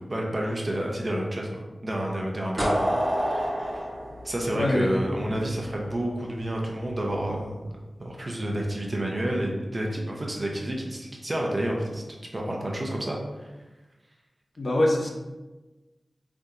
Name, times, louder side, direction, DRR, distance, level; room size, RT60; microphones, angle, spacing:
voice 1, 0.0-2.9 3.1-3.8 4.2-7.6 8.0-12.0 12.3-13.2, right 1 dB, 45° right, -1 dB, 0.7 m, -30 dB
sound 1, 2.6-5.4, equal, 20° right, 0.9 m, -27 dB
voice 2, 4.5-5.0 14.6-15.1, left 1 dB, 65° left, 1 dB, 0.5 m, -23 dB
3.4 x 2.8 x 2.4 m, 1.1 s
cardioid pair, 45°, 0 cm